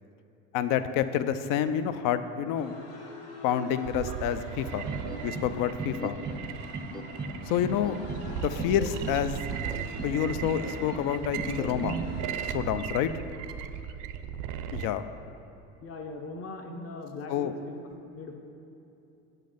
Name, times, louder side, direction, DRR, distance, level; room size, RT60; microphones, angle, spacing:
voice 1, 0.5-2.7 3.4-4.8 5.2-6.2 7.5-8.0 8.4-9.4 10.0-12.0 12.5-13.1 14.7-15.0 17.3-17.5, left 9 dB, 55° left, 12 dB, 0.5 m, -28 dB
sound 1, 2.6-12.7, left 3 dB, 80° left, 1.3 m, -48 dB
sound 2, 3.8-14.9, right 9 dB, 55° right, 0.5 m, -37 dB
sound 3, 4.9-5.5 5.8-6.4 6.7-7.3 7.6-8.2 8.6-9.2 9.5-10.1 10.4-11.0 11.4-12.0, right 3 dB, 10° right, 0.6 m, -36 dB
voice 2, 15.8-17.8 18.1-18.3, left 3 dB, 35° left, 3 dB, 1.0 m, -40 dB
7.6 x 5.4 x 5.1 m, 2.8 s
hypercardioid pair, 85°, 40 cm